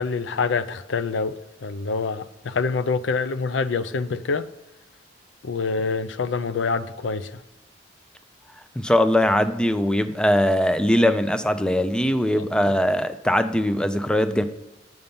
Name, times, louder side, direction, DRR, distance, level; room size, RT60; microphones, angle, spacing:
voice 1, 0.0-4.5 5.4-7.4 12.4-12.7, left 4 dB, 80° left, 0.5 m, -26 dB
voice 2, 8.8-14.4, left 1 dB, 5° left, 0.4 m, -21 dB
7.7 x 5.7 x 5.3 m
head